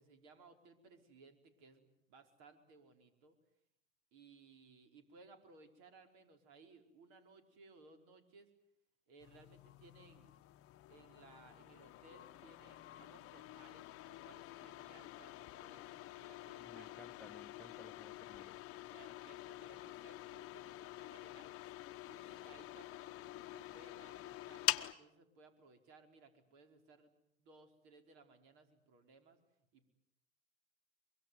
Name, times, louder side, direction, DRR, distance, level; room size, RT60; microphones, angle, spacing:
voice 1, 0.0-3.4 4.1-8.5 9.1-10.4 10.9-17.0 18.9-21.5 22.1-29.4 29.7-29.9, right 3 dB, 60° right, 6 dB, 4.9 m, -62 dB
sound 1, 9.2-24.9, left 15 dB, 35° left, 1.1 m, -46 dB
voice 2, 16.6-18.5, left 1 dB, 5° left, 6 dB, 1.2 m, -59 dB
24.0 x 23.0 x 9.5 m, 0.78 s
hypercardioid pair, 110°, 40 cm